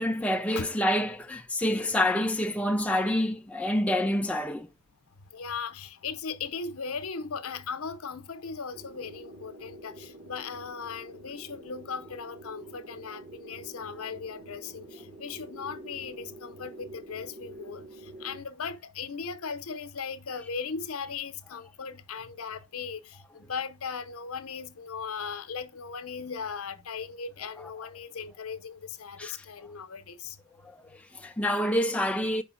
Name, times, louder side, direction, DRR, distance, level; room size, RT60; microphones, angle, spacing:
voice 1, 0.0-4.7 29.2-29.3 30.6-32.4, left 1 dB, 5° left, 0.4 m, -27 dB
voice 2, 5.3-30.4, left 5 dB, 80° left, 0.8 m, -38 dB
sound 1, 8.7-18.4, right 2 dB, 50° right, 1.3 m, -47 dB
5.0 x 4.5 x 5.8 m
head